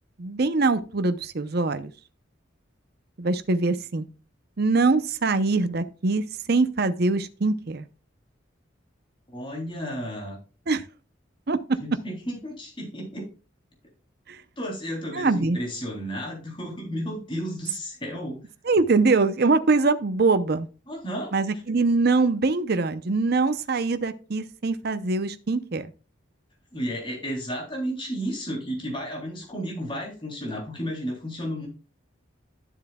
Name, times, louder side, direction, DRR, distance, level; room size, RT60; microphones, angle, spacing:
voice 1, 0.2-1.9 3.2-4.0 4.6-7.9 10.7-10.8 11.5-11.6 14.3-14.4 15.1-15.6 18.6-20.7 21.3-25.9, right 3 dB, 55° right, 0.7 m, -23 dB
voice 2, 9.3-10.4 11.8-13.3 14.6-18.4 20.9-21.3 26.7-31.7, equal, 25° left, 3.4 m, -32 dB
12.0 x 7.1 x 2.3 m
head